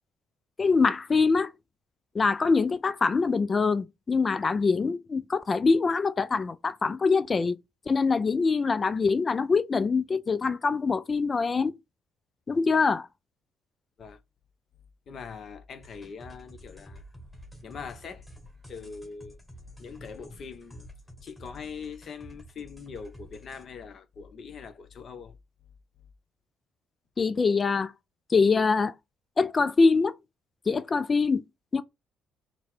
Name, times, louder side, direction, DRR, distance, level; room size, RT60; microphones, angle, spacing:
voice 1, 0.6-1.5 2.1-7.6 7.9-11.7 12.5-13.1 27.2-27.9 28.3-28.9 29.4-30.1 30.7-31.4 31.7-31.8, left 4 dB, 35° left, 0.3 m, -24 dB
voice 2, 15.1-17.0 17.6-18.3 18.7-19.4 19.8-20.9 21.2-25.4, left 5 dB, 55° left, 0.7 m, -42 dB
sound 1, 15.8-23.7, right 1 dB, 10° left, 1.2 m, -50 dB
3.9 x 2.1 x 4.4 m
supercardioid pair, 70°, 0 cm